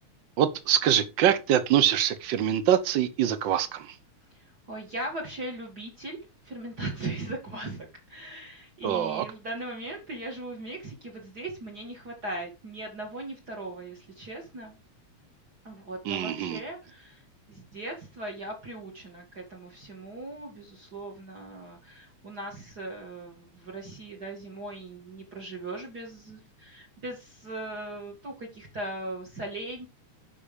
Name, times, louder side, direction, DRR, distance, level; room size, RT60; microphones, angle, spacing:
voice 1, 0.4-4.0 8.8-9.2 16.0-16.6, right 10 dB, 65° right, 1.2 m, -24 dB
voice 2, 4.3-6.2 6.4-14.8 15.6-17.2 17.5-29.9, right 2 dB, 35° right, 2.4 m, -39 dB
9.6 x 6.4 x 5.1 m
omnidirectional pair, 3.4 m